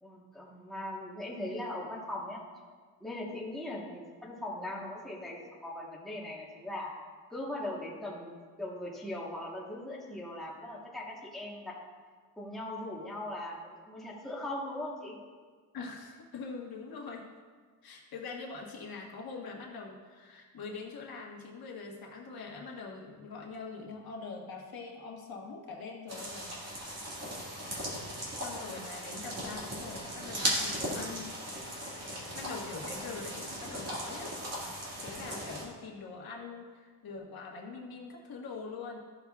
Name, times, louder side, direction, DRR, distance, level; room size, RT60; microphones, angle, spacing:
voice 1, 0.0-2.4 3.0-6.9 7.3-11.7 12.4-15.2 28.7-28.8 32.4-32.6, left 1 dB, ahead, -5 dB, 1.2 m, -40 dB
voice 2, 15.7-17.3 17.8-26.6 28.3-31.4 32.3-34.4 35.0-39.0, left 4 dB, 70° left, -1 dB, 1.3 m, -43 dB
sound 1, 26.1-35.6, right 1 dB, 40° right, 2.0 m, -37 dB
14.0 x 5.9 x 2.4 m, 1.5 s
wide cardioid pair, 170°, 38 cm